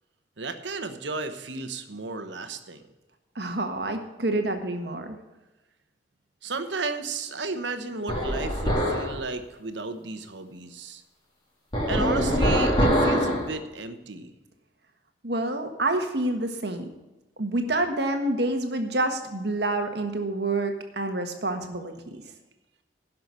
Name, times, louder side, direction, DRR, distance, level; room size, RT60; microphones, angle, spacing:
voice 1, 0.4-2.8 6.4-11.0 11.9-14.3, right 3 dB, 80° right, 8 dB, 1.1 m, -33 dB
voice 2, 3.3-5.2 15.2-16.8 17.4-22.2, right 2 dB, 65° right, 5 dB, 1.5 m, -28 dB
sound 1, 8.1-9.1 11.7-13.5, equal, 25° left, 3.0 m, -23 dB
11.0 x 6.0 x 8.2 m, 1.1 s
head